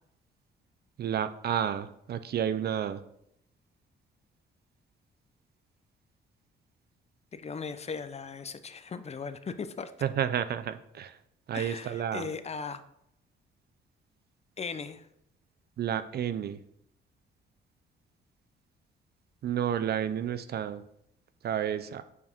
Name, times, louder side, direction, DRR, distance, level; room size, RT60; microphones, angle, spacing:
voice 1, 1.0-3.0 10.0-11.1 11.5-12.3 15.8-16.6 19.4-20.8 21.4-22.0, right 9 dB, 55° right, 13 dB, 0.5 m, -31 dB
voice 2, 7.3-9.9 11.5-12.8 14.6-15.1, left 5 dB, 35° left, 11 dB, 0.6 m, -38 dB
8.2 x 4.7 x 3.6 m, 0.75 s
cardioid pair, 90°, 20 cm